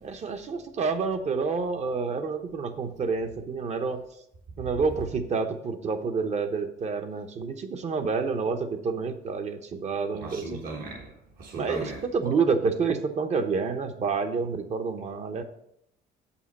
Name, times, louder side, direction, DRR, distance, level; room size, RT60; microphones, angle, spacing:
voice 1, 0.0-4.0 4.6-10.6 11.6-15.4, right 5 dB, 40° right, 0.9 m, -28 dB
voice 2, 10.2-11.1 11.4-12.3, right 3 dB, 60° right, 1.2 m, -37 dB
7.5 x 5.6 x 4.1 m
cardioid pair, 110°, 17 cm